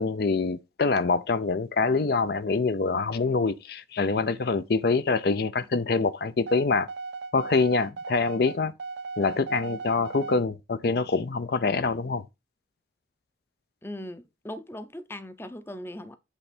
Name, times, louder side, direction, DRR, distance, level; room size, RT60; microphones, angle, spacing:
voice 1, 0.0-6.9 7.3-8.7 9.2-12.2, left 4 dB, 55° left, 0.5 m, -25 dB
sound 1, 6.5-10.4, right 4 dB, 70° right, 0.6 m, -37 dB
voice 2, 13.8-16.2, left 1 dB, 15° left, 0.6 m, -39 dB
8.3 x 3.4 x 5.9 m
head